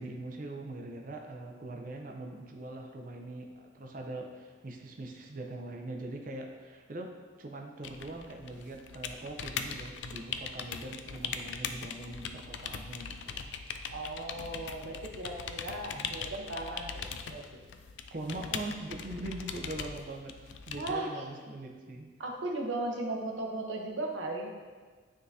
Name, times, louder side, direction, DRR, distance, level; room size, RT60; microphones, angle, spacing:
voice 1, 0.0-7.1 7.4-13.4 15.9-16.2 18.1-22.1, right 2 dB, 45° right, 2 dB, 0.6 m, -42 dB
sound 1, 7.8-21.0, left 6 dB, 70° left, 0.3 m, -41 dB
voice 2, 13.9-17.6 20.8-21.2 22.2-24.5, right 2 dB, 80° right, 0 dB, 0.9 m, -37 dB
9.3 x 3.7 x 2.7 m, 1.5 s
head